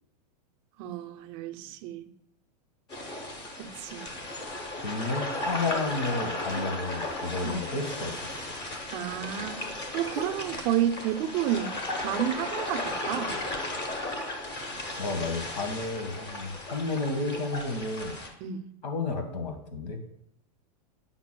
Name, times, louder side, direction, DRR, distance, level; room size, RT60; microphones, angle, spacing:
voice 1, 0.8-2.1 3.6-4.1 7.4-7.6 8.9-9.7 9.9-11.8 12.0-13.4 18.4-18.7, right 11 dB, 30° right, 7 dB, 0.4 m, -31 dB
sound 1, 2.9-18.3, left 1 dB, 20° left, 0.9 m, -35 dB
voice 2, 4.8-8.2 15.0-18.2 18.8-20.0, left 3 dB, 90° left, 6 dB, 1.5 m, -32 dB
9.3 x 5.8 x 2.2 m, 0.80 s
supercardioid pair, 160°, 21 cm